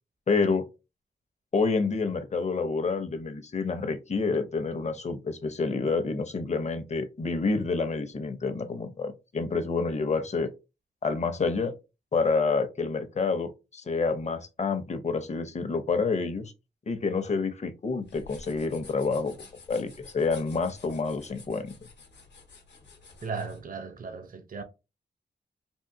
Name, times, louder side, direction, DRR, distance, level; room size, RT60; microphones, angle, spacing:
voice 1, 0.3-0.7 1.5-10.5 11.0-11.7 12.1-16.5 16.9-19.3 19.7-21.7, left 4 dB, 40° left, 0.6 m, -28 dB
sound 1, 18.0-23.6, left 4 dB, 75° left, 0.9 m, -51 dB
voice 2, 23.2-24.6, right 5 dB, 50° right, 0.6 m, -36 dB
3.6 x 2.4 x 2.7 m
cardioid pair, 70°, 18 cm